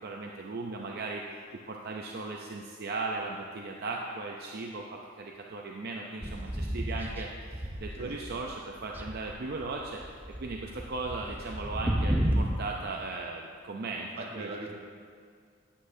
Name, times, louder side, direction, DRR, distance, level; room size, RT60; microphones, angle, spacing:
voice 1, 0.0-1.2 1.5-10.0 10.4-14.5, right 3 dB, 50° right, 0 dB, 0.6 m, -37 dB
sound 1, 6.2-8.5 8.8-12.6, equal, 10° right, 0.6 m, -32 dB
voice 2, 14.2-14.7, right 2 dB, 30° right, -1 dB, 1.2 m, -40 dB
12.5 x 8.6 x 2.7 m, 2.1 s
head